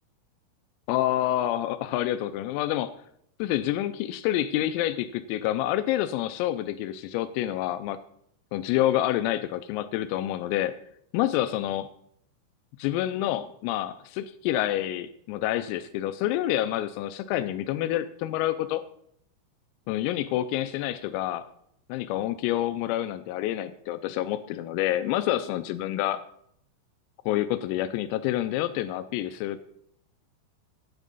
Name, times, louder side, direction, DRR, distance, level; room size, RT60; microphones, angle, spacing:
voice 1, 0.9-2.9 3.4-8.0 8.5-10.7 11.1-11.9 12.8-18.8 19.9-21.5 21.9-26.2 27.3-29.6, left 13 dB, 85° left, 11 dB, 3.3 m, -28 dB
12.5 x 9.9 x 4.0 m, 0.69 s
omnidirectional pair, 6.0 m